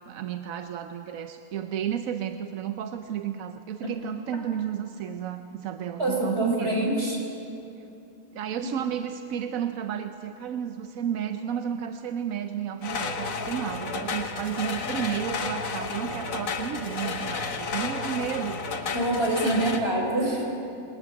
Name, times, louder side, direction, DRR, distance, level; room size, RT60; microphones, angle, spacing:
voice 1, 0.1-6.9 8.3-18.9 19.3-19.6, right 9 dB, 90° right, 8 dB, 1.2 m, -32 dB
voice 2, 6.0-7.2 8.6-8.7 18.9-20.5, right 1 dB, 50° right, 0 dB, 4.8 m, -26 dB
sound 1, 12.8-19.8, left 4 dB, 90° left, 1.7 m, -32 dB
22.0 x 19.0 x 8.2 m, 2.8 s
omnidirectional pair, 1.4 m